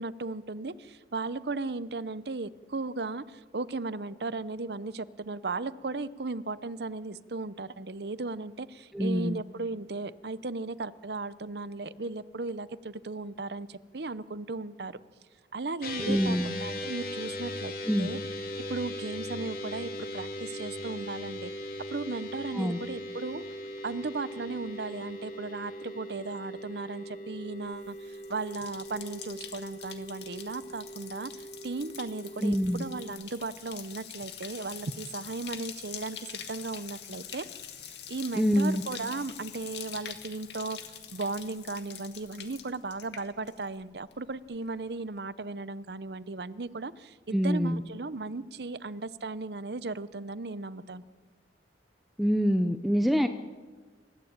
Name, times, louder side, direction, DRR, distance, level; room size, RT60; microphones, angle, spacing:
voice 1, 0.0-15.0 15.5-17.7 18.0-18.2 18.7-21.5 21.9-23.4 23.8-37.4 37.8-51.0, right 3 dB, 65° right, 15 dB, 0.8 m, -36 dB
voice 2, 8.9-9.4 16.0-16.5 17.9-18.1 22.5-22.8 32.4-32.8 38.4-38.8 47.3-47.8 52.2-53.3, equal, ahead, 6 dB, 0.7 m, -25 dB
sound 1, 15.8-33.1, left 1 dB, 55° left, 3.2 m, -39 dB
Bathtub (filling or washing), 27.7-43.8 44.1-44.6, left 9 dB, 70° left, 2.2 m, -45 dB
29.0 x 14.5 x 8.9 m, 1.4 s
head